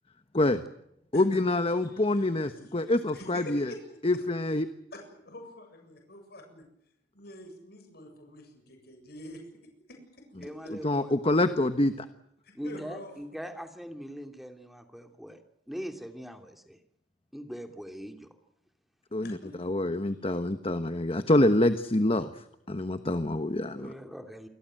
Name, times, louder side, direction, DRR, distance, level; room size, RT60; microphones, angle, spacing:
voice 1, 1.1-3.7 4.0-4.7 10.8-12.1 19.1-22.3 22.7-23.9, left 1 dB, 35° left, 10 dB, 1.2 m, -26 dB
voice 2, 1.8-2.3 2.6-3.8 4.9-6.6 7.1-9.4 10.6-11.0 12.6-13.1 19.2-20.1, left 1 dB, 60° left, 4 dB, 7.6 m, -46 dB
voice 3, 10.4-11.5 12.5-15.4 15.7-16.8 17.3-18.3 23.7-24.5, equal, ahead, 5 dB, 2.9 m, -41 dB
28.5 x 21.5 x 7.8 m, 0.79 s
head